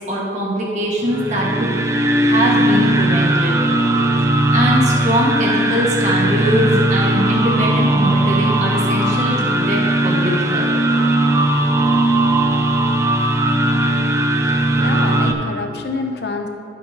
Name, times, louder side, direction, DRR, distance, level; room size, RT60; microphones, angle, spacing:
voice 1, 0.1-1.7 2.2-3.6 4.5-10.8, equal, 40° right, -4 dB, 1.8 m, -21 dB
sound 1, 1.1-15.3, right 1 dB, 15° right, 0.5 m, -17 dB
voice 2, 14.5-16.5, left 3 dB, 65° left, 4 dB, 0.9 m, -27 dB
14.0 x 7.5 x 3.0 m, 2.5 s
head